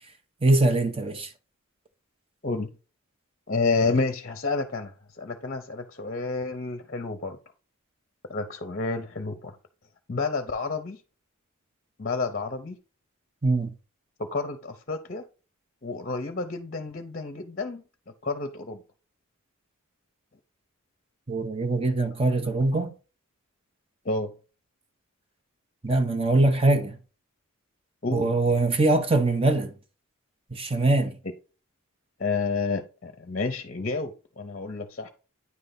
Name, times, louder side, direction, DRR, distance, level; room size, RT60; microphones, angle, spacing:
voice 1, 0.4-1.3 13.4-13.7 21.3-22.9 25.8-27.0 28.1-29.7 30.5-31.2, right 2 dB, 25° right, 0.8 m, -22 dB
voice 2, 3.5-4.9 5.2-7.4 8.3-9.5 10.1-11.0 12.0-12.8 14.3-15.2 15.8-17.8 18.2-18.8 24.1-24.3 28.0-28.3 32.2-35.1, left 3 dB, 40° left, 0.7 m, -29 dB
9.5 x 3.3 x 4.0 m
head